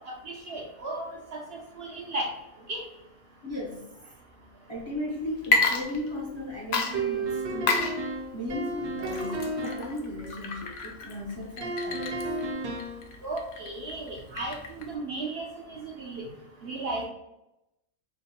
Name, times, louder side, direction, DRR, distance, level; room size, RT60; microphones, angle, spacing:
voice 1, 0.3-2.3 2.7-2.8 13.2-16.2 16.6-17.0, right 2 dB, 55° right, -1 dB, 0.7 m, -35 dB
voice 2, 3.4-4.2 4.7-12.2, left 1 dB, 30° left, -4 dB, 0.6 m, -36 dB
Water / Liquid, 5.4-6.4 6.7-15.0, left 3 dB, 70° left, 0.6 m, -31 dB
sound 1, 6.9-9.9 11.6-13.0, right 2 dB, 75° right, 1.3 m, -32 dB
5.6 x 2.2 x 2.8 m, 0.89 s
omnidirectional pair, 1.6 m